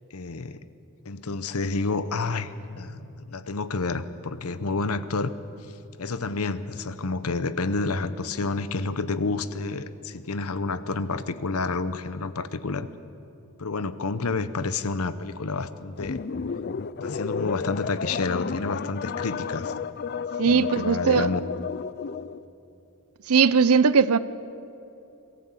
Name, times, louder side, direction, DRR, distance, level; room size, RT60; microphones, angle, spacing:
voice 1, 0.1-0.6 1.0-5.3 6.0-12.9 13.6-16.2 17.0-19.7 20.4-21.4, left 3 dB, 70° left, 13 dB, 0.9 m, -29 dB
sound 1, 16.0-22.4, left 5 dB, 45° left, 0.5 m, -32 dB
voice 2, 20.4-21.3 23.3-24.2, right 5 dB, 75° right, 16 dB, 0.6 m, -19 dB
22.5 x 14.5 x 8.4 m, 2.9 s
head